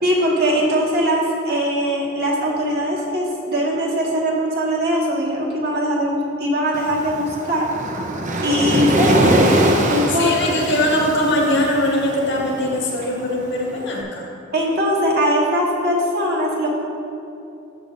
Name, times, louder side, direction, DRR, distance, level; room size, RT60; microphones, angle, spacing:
voice 1, 0.0-7.7 8.4-10.3 10.6-10.7 14.5-16.7, equal, 55° right, -3 dB, 1.6 m, -21 dB
Waves surf, 6.7-13.9, right 1 dB, 40° right, 0.7 m, -22 dB
voice 2, 10.1-14.3, left 1 dB, 60° left, -2 dB, 1.6 m, -21 dB
13.5 x 6.8 x 2.5 m, 2.9 s
head